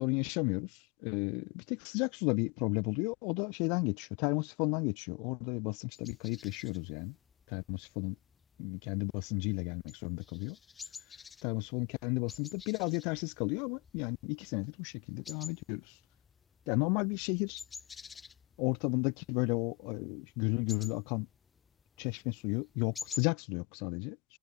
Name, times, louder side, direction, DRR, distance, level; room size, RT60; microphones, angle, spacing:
voice 1, 0.0-7.1 7.5-8.1 8.6-10.6 11.4-15.9 16.7-17.6 18.6-21.3 22.0-24.2, left 32 dB, 75° left, 1.3 m, -33 dB
sound 1, 5.9-23.3, left 5 dB, 20° left, 4.2 m, -51 dB
cardioid pair, 155°, 0 cm